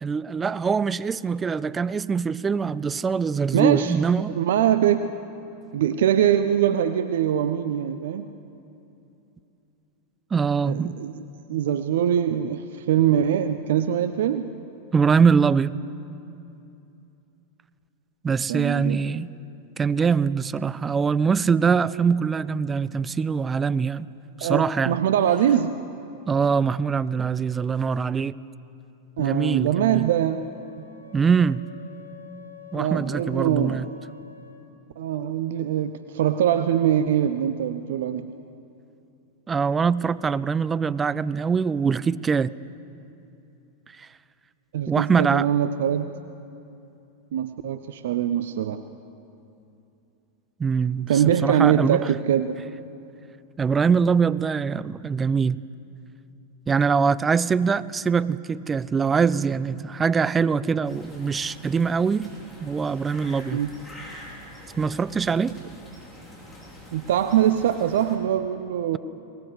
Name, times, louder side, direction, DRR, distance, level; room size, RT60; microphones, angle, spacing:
voice 1, 0.0-4.4 10.3-11.0 14.9-15.8 18.2-19.3 19.8-24.1 24.4-25.0 26.3-28.4 29.2-30.1 31.1-31.6 32.7-33.9 39.5-42.5 44.0-44.1 44.9-45.5 50.6-51.1 51.4-52.0 53.6-55.6 56.7-62.3 62.6-63.6 64.8-65.6, right 5 dB, 15° right, 0.5 m, -23 dB
voice 2, 3.5-4.0 4.4-5.1 5.7-8.3 10.6-14.6 18.5-19.0 24.4-25.8 29.2-30.4 32.7-33.8 35.0-38.3 44.7-46.1 47.3-48.9 51.1-52.7 63.5-63.7 66.9-69.0, right 10 dB, 60° right, 0.7 m, -23 dB
Wind instrument woodwind instrument, 30.2-34.7, left 8 dB, 90° right, 1.9 m, -47 dB
sound 1, 60.8-68.2, left 1 dB, 10° left, 5.4 m, -45 dB
20.0 x 19.5 x 8.4 m
figure-of-eight pair, 90°, 0 cm